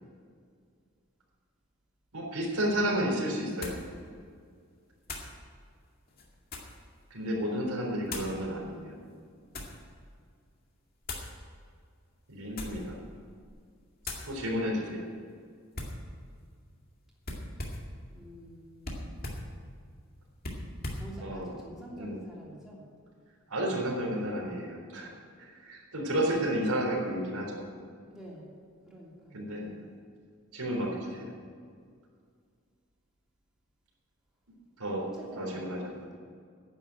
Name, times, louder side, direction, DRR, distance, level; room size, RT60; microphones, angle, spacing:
voice 1, 2.1-3.7 7.1-8.9 12.3-13.0 14.2-15.1 21.2-21.5 21.9-22.2 23.5-25.1 25.4-27.6 29.3-29.7 30.5-31.3 34.8-35.0 35.4-35.9, equal, 90° right, -1 dB, 3.8 m, -31 dB
sound 1, 2.5-2.6 3.6-3.9 5.0-5.4 6.1-6.8 8.0-8.4 9.1-9.8 11.0-11.3 12.4-12.9 13.3-13.6 14.0-14.3 15.7-16.0 17.2-17.9 18.8-19.5 20.4-21.1, left 2 dB, 40° left, 2.1 m, -39 dB
voice 2, 18.1-19.7 20.9-22.8 28.1-29.5 35.0-35.8, right 1 dB, ahead, -6 dB, 3.1 m, -48 dB
10.5 x 9.1 x 9.9 m, 2.1 s
head